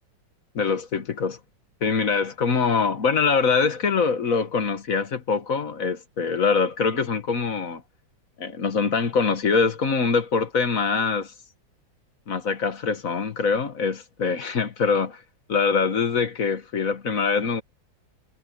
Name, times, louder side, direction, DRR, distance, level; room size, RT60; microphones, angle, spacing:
voice 1, 0.5-1.4 1.8-7.8 8.4-11.3 12.3-15.2 15.5-17.6, left 5 dB, 50° left, 1.7 m, -23 dB
omnidirectional pair, 2.0 m